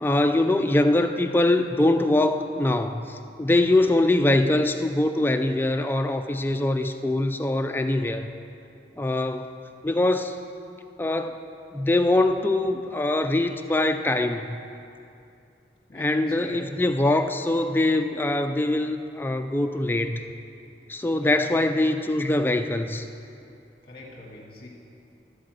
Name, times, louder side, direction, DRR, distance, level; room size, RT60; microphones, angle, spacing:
voice 1, 0.0-8.3 9.0-9.5 9.8-10.3 11.0-11.4 11.7-14.6 15.9-20.2 20.9-23.0, left 2 dB, 10° left, 6 dB, 0.4 m, -23 dB
voice 2, 15.9-16.8 21.1-21.9 23.8-24.7, left 1 dB, 35° left, -2 dB, 1.7 m, -42 dB
13.0 x 4.8 x 7.6 m, 2.6 s
head